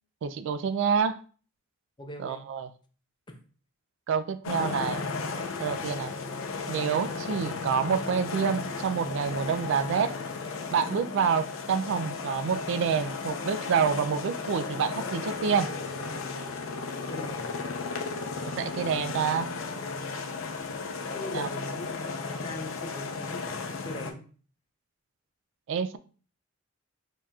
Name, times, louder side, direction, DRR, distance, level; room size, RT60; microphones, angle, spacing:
voice 1, 0.2-1.2 2.2-2.7 4.1-5.0 5.6-6.1 6.7-10.2 10.7-15.7 18.6-19.5 21.3-21.5 25.7-26.0, right 6 dB, 65° right, 0.3 m, -27 dB
voice 2, 2.0-2.4 3.3-3.4 17.1-17.5 21.1-24.2, left 1 dB, 25° left, 0.5 m, -41 dB
sound 1, 4.4-24.1, left 4 dB, 80° left, 0.6 m, -35 dB
4.6 x 2.8 x 2.3 m
head